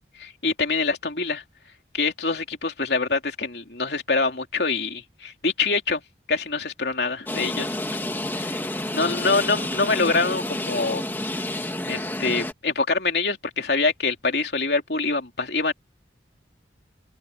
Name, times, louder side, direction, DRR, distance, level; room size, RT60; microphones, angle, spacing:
voice 1, 0.2-1.4 1.9-6.0 6.3-7.8 8.3-11.0 11.9-15.7, left 3 dB, 65° left, 3.3 m, -25 dB
sound 1, 7.3-12.5, left 1 dB, 10° left, 1.4 m, -29 dB
open air
head